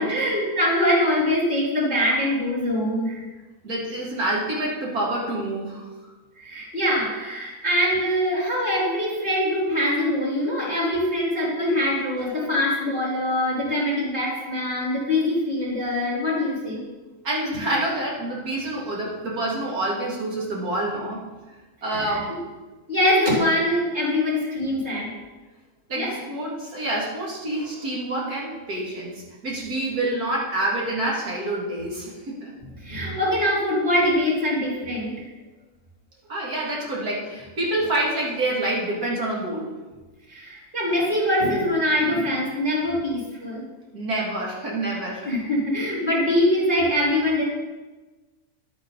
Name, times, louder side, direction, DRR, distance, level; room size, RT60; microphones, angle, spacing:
voice 1, 0.0-3.2 6.4-16.8 21.9-22.2 22.9-25.1 26.0-26.1 32.8-35.3 40.3-43.6 45.2-47.4, left 1 dB, 35° right, -5 dB, 3.6 m, -23 dB
voice 2, 3.6-6.1 12.2-12.3 17.2-21.2 21.8-22.3 25.9-32.5 36.3-39.8 43.9-45.3, right 1 dB, 90° right, -4 dB, 2.9 m, -27 dB
11.0 x 8.5 x 4.0 m, 1.2 s
omnidirectional pair, 1.6 m